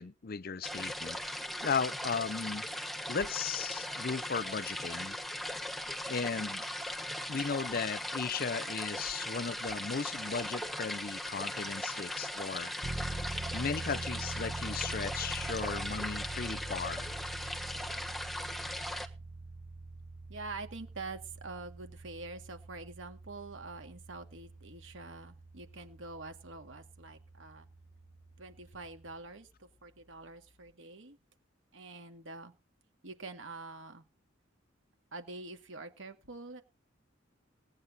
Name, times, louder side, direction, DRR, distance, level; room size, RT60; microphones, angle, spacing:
voice 1, 0.0-2.7 3.1-5.2 5.4-5.6 6.1-6.6 7.3-12.7 13.5-17.1, left 5 dB, 50° left, 0.6 m, -36 dB
sound 1, 0.6-19.1, left 1 dB, ahead, 1.3 m, -39 dB
sound 2, 12.8-29.2, right 2 dB, 35° right, 1.6 m, -44 dB
voice 2, 20.3-27.7 28.4-31.2 31.7-32.5 33.0-34.0 35.1-36.6, right 3 dB, 80° right, 2.2 m, -46 dB
18.5 x 9.4 x 4.0 m
head